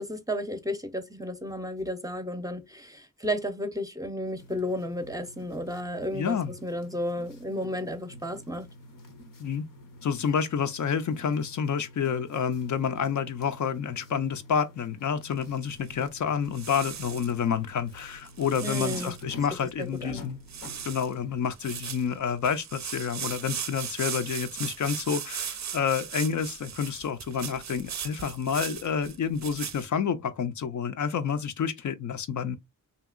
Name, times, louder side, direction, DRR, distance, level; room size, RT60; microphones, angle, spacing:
voice 1, 0.0-8.7 18.6-19.1 19.8-20.2, equal, 10° right, 0.5 m, -33 dB
sound 1, 4.4-21.4, left 1 dB, 90° left, 0.8 m, -49 dB
voice 2, 6.1-6.5 9.4-9.6 10.0-20.4 20.8-32.6, left 7 dB, 65° left, 0.5 m, -29 dB
sound 2, 15.3-16.1 16.5-17.3 18.0-19.2 19.7-19.8 20.0-20.2 20.5-21.1 21.5-29.8, right 8 dB, 60° right, 0.4 m, -38 dB
2.8 x 2.8 x 2.3 m
wide cardioid pair, 75°, 32 cm